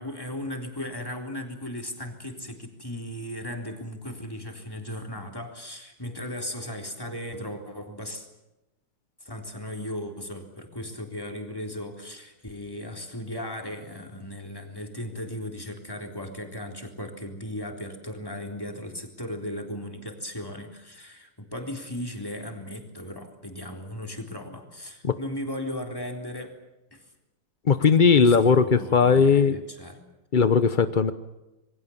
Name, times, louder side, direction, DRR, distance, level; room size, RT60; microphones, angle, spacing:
voice 1, 0.0-8.3 9.2-26.6 26.9-27.0 28.2-30.0, left 1 dB, 10° left, 3 dB, 3.8 m, -36 dB
voice 2, 27.7-29.6 30.3-31.1, left 5 dB, 55° left, 11 dB, 0.5 m, -18 dB
27.5 x 22.5 x 7.3 m, 0.99 s
omnidirectional pair, 2.3 m